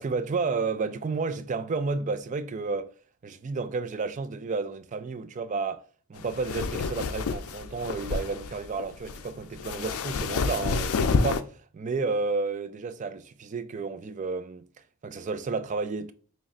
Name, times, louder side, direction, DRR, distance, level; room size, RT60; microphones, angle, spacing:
voice 1, 0.0-2.9 3.2-5.8 6.1-14.7 15.0-16.1, right 4 dB, 35° right, 0.3 m, -31 dB
sound 1, 6.2-11.4, left 4 dB, 85° left, 0.4 m, -29 dB
5.0 x 3.1 x 2.4 m
head